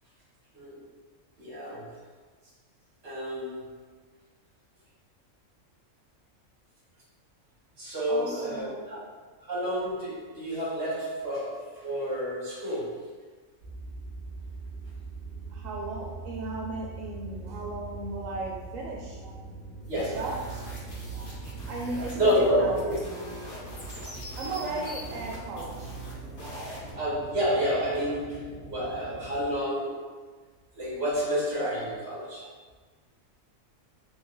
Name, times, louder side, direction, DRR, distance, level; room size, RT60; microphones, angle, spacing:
voice 1, 1.4-1.9 3.0-3.7 7.8-9.0 9.5-13.1 19.9-20.2 21.1-21.3 22.1-23.0 27.0-30.1 30.7-32.5, equal, 55° right, -6 dB, 1.7 m, -29 dB
voice 2, 8.1-9.0 15.5-19.2 19.5-20.6 21.7-23.1 24.4-25.9, right 2 dB, 85° right, -2 dB, 1.0 m, -36 dB
sound 1, 13.6-29.6, right 3 dB, 20° left, 1.4 m, -43 dB
sound 2, 19.8-26.9, right 1 dB, 60° left, 1.8 m, -41 dB
3.9 x 3.3 x 3.8 m, 1.4 s
omnidirectional pair, 1.3 m